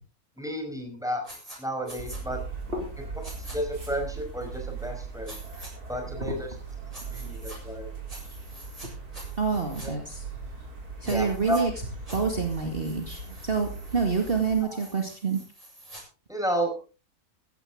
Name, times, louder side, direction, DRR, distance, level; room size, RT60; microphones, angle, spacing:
voice 1, 0.4-1.2 1.6-2.4 3.3-5.4 5.9-6.5 7.1-7.9 9.8-9.9 11.0-11.6 14.6-14.8 16.3-16.7, equal, ahead, 3 dB, 5.2 m, -32 dB
sound 1, 1.2-1.6 1.8-2.2 3.2-3.6 5.2-5.7 6.9-7.6 8.1-8.9 9.1-9.9 11.0-11.6 12.1-16.0, right 1 dB, 20° right, 7.4 m, -46 dB
sound 2, 2.0-14.6, right 4 dB, 80° right, 4.3 m, -39 dB
voice 2, 9.4-10.2 11.0-11.7 12.1-15.4, right 5 dB, 40° right, 3 dB, 2.4 m, -27 dB
16.0 x 14.5 x 3.8 m, 0.34 s
omnidirectional pair, 1.6 m